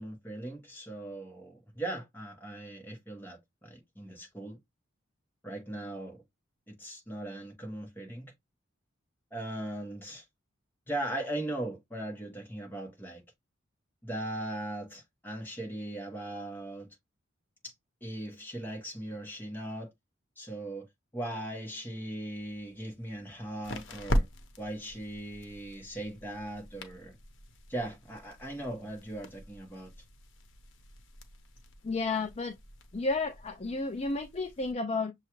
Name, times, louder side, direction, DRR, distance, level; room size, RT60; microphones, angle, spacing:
voice 1, 0.0-4.6 5.4-6.2 6.7-8.3 9.3-10.2 10.9-13.2 14.0-16.9 17.6-17.7 18.0-19.9 20.4-20.9 21.1-24.3 24.6-27.2 27.7-29.9, right 1 dB, 10° left, 1.2 m, -39 dB
sound 1, 22.3-34.7, equal, 65° left, 0.8 m, -40 dB
voice 2, 31.8-32.5 32.9-35.1, left 3 dB, 30° left, 0.4 m, -32 dB
6.5 x 2.3 x 3.0 m
head